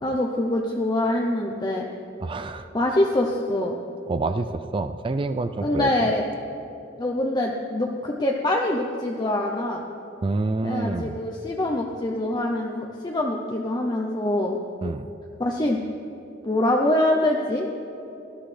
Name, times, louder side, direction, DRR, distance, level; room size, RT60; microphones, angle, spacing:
voice 1, 0.0-1.9 2.7-3.8 5.6-6.3 7.0-9.8 10.6-14.6 15.4-15.8 16.4-17.7, left 1 dB, 20° left, 0 dB, 0.7 m, -24 dB
voice 2, 2.2-2.7 4.1-6.1 10.2-11.2 14.8-15.1, right 3 dB, 25° right, 10 dB, 0.3 m, -27 dB
18.5 x 12.0 x 3.3 m, 2.9 s
head